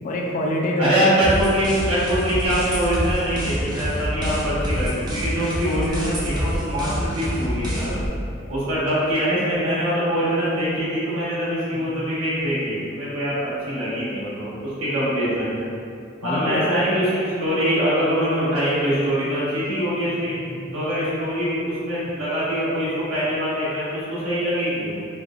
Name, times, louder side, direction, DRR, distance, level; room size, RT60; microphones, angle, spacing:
voice 1, 0.0-1.2 11.7-11.9 16.2-16.7 20.3-20.7, left 1 dB, 40° left, -1 dB, 0.3 m, -26 dB
voice 2, 0.8-8.0 8.5-15.7 16.2-20.3 20.7-25.0, equal, 75° right, -10 dB, 1.0 m, -23 dB
sound 1, 1.2-8.1, equal, 20° right, 0.5 m, -27 dB
2.9 x 2.4 x 2.4 m, 2.5 s
head